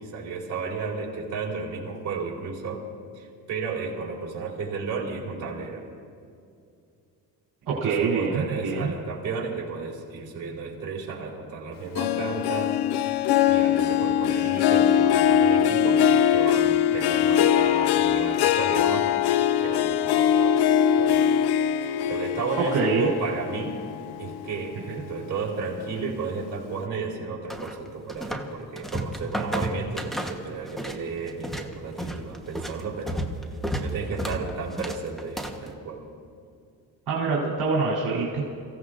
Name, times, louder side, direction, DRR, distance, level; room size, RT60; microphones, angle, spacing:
voice 1, 0.0-2.8 3.1-5.9 7.7-12.8 13.5-16.0 16.3-20.6 20.9-21.4 21.8-23.8 24.2-33.2 33.7-36.1, right 5 dB, 45° right, -4 dB, 4.8 m, -33 dB
voice 2, 7.7-8.9 22.6-23.1 37.1-38.4, right 4 dB, 65° right, -6 dB, 3.8 m, -25 dB
Harp, 12.0-24.7 25.1-25.5 26.0-26.1, left 9 dB, 70° left, 0.6 m, -22 dB
sound 1, 27.5-28.5 28.8-31.0 31.3-35.7, right 1 dB, ahead, 1.2 m, -32 dB
29.5 x 16.5 x 2.6 m, 2.4 s
cardioid pair, 130°, 41 cm